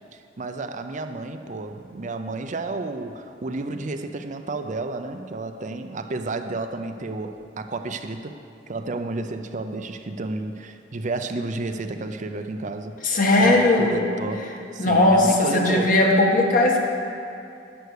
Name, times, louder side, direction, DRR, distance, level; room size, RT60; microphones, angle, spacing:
voice 1, 0.1-8.4 8.7-13.0 13.4-15.9, right 3 dB, 40° right, 7 dB, 0.5 m, -31 dB
voice 2, 13.0-14.0 14.8-16.8, left 2 dB, 45° left, 0 dB, 1.6 m, -18 dB
11.5 x 8.0 x 6.5 m, 2.6 s
head